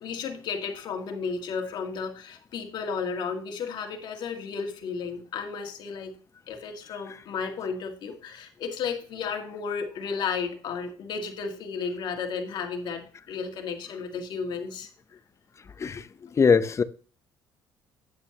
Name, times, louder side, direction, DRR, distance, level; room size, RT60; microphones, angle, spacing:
voice 1, 0.0-6.1 6.5-14.9, left 5 dB, 65° left, 2.0 m, -33 dB
voice 2, 16.4-16.8, left 5 dB, 35° left, 0.8 m, -20 dB
9.4 x 8.4 x 2.9 m
supercardioid pair, 70°, 8 cm